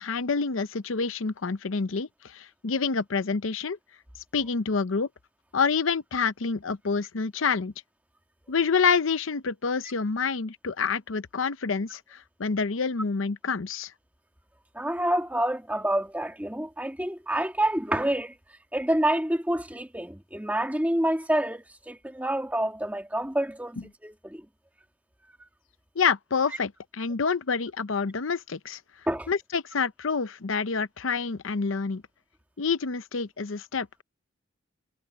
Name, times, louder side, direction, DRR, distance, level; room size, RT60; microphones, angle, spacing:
voice 1, 0.0-3.8 4.3-5.1 5.5-7.7 8.5-13.9 26.0-28.8 29.3-32.0 32.6-34.0, left 5 dB, 80° left, 0.7 m, -27 dB
voice 2, 14.7-23.8 24.0-24.5 29.1-29.3, right 1 dB, 10° right, 1.8 m, -28 dB
head